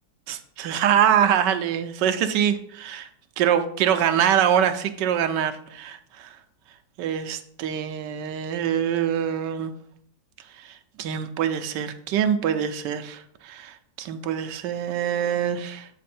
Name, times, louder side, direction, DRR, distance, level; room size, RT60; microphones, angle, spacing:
voice 1, 0.3-3.1 3.4-6.3 7.0-9.7 10.6-15.9, right 9 dB, 80° right, 9 dB, 1.2 m, -24 dB
8.3 x 4.0 x 4.3 m, 0.67 s
omnidirectional pair, 1.9 m